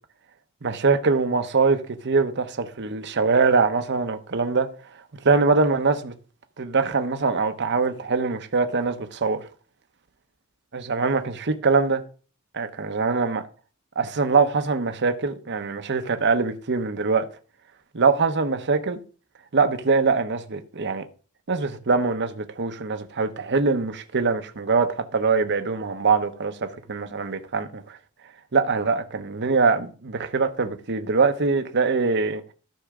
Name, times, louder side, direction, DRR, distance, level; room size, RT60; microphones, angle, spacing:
voice 1, 0.6-4.7 5.2-6.1 6.6-9.4 10.7-12.0 12.5-13.4 14.0-17.3 17.9-19.0 19.5-21.0 21.5-28.0 28.5-32.4, right 4 dB, 55° right, 0.9 m, -23 dB
13.5 x 6.4 x 3.7 m
head